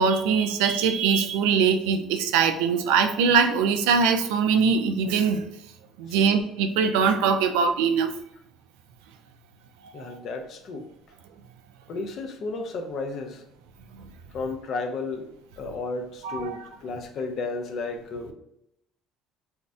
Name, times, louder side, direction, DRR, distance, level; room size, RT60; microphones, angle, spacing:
voice 1, 0.0-5.4 6.0-8.1 9.8-10.2 16.2-16.6, right 6 dB, 80° right, 7 dB, 0.3 m, -22 dB
voice 2, 9.9-10.9 11.9-13.4 14.3-15.3 15.6-18.3, left 3 dB, 60° left, 4 dB, 0.5 m, -33 dB
2.6 x 2.0 x 3.5 m, 0.79 s
supercardioid pair, 75°, 0 cm